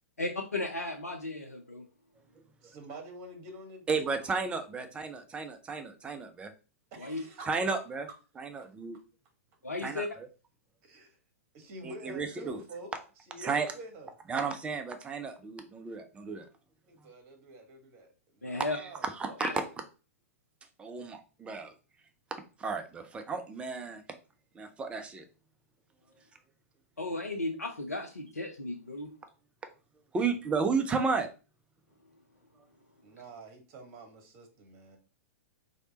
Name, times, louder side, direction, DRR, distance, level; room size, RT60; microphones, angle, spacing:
voice 1, 0.2-1.8 7.0-7.2 9.6-10.1 18.4-18.8 19.4-19.5 27.0-29.1, left 2 dB, 80° left, 3 dB, 0.5 m, -35 dB
voice 2, 2.6-4.1 6.9-7.8 10.8-11.2 11.5-12.9 13.3-14.1 16.9-19.7 30.2-30.4 33.0-35.0, right 2 dB, 35° right, 4 dB, 1.3 m, -47 dB
voice 3, 3.9-6.5 7.5-8.0 8.4-8.9 9.8-10.3 11.8-12.6 13.4-13.7 14.3-16.4 18.7-18.8 19.2-19.5 20.8-21.7 22.6-24.0 24.6-25.2 30.1-31.3, right 4 dB, 15° right, 6 dB, 0.5 m, -33 dB
3.3 x 2.8 x 3.9 m, 0.34 s
figure-of-eight pair, 105°, 8 cm